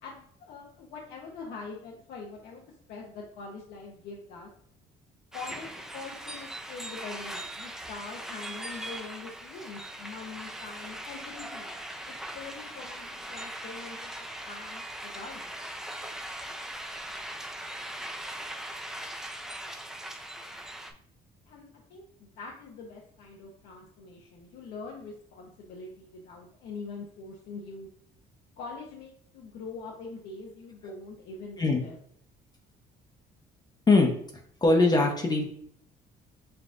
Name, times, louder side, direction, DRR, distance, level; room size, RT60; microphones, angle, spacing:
voice 1, 0.0-4.5 5.3-11.7 12.1-15.4 21.5-27.9 28.6-32.0, left 4 dB, 80° left, -1 dB, 0.8 m, -43 dB
sound 1, 5.3-20.9, right 1 dB, 5° right, 0.4 m, -40 dB
voice 2, 34.6-35.4, left 3 dB, 25° left, 1 dB, 0.7 m, -21 dB
6.9 x 2.4 x 2.5 m, 0.62 s
cardioid pair, 110°, 17 cm